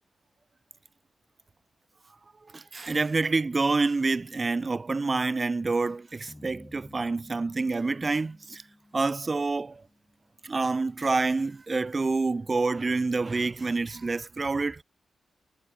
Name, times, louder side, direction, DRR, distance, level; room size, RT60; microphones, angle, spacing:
voice 1, 2.5-8.6 8.9-9.8 10.4-14.8, right 3 dB, 35° right, 0.4 m, -27 dB
sound 1, 6.3-10.7, left 1 dB, 15° left, 5.5 m, -54 dB
cardioid pair, 80°, 0 cm